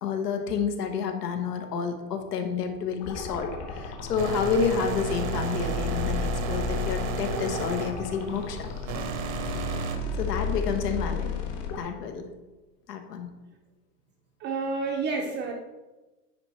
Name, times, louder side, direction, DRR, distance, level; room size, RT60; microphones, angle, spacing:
voice 1, 0.0-8.7 10.2-11.4 11.8-12.3 12.9-13.3, left 6 dB, 80° left, 5 dB, 1.2 m, -29 dB
sound 1, 3.0-11.8, left 4 dB, 45° left, 1.4 m, -33 dB
sound 2, 4.2-10.0, right 5 dB, 60° right, 0.9 m, -33 dB
voice 2, 14.4-15.5, right 4 dB, 25° right, 0 dB, 0.6 m, -29 dB
9.6 x 3.2 x 4.3 m, 1.1 s
hypercardioid pair, 130°, 47 cm